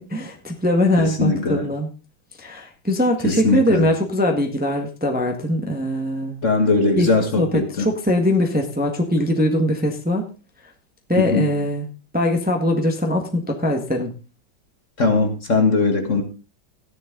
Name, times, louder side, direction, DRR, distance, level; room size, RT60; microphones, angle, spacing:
voice 1, 0.0-1.9 2.4-6.4 7.0-7.1 7.4-10.2 11.1-11.9 12.1-14.1, left 1 dB, 5° right, 2 dB, 1.3 m, -21 dB
voice 2, 1.0-1.7 3.2-3.9 6.4-7.9 11.2-11.5 15.0-16.2, left 3 dB, 40° left, 4 dB, 1.9 m, -20 dB
13.5 x 10.5 x 3.9 m, 0.33 s
omnidirectional pair, 2.2 m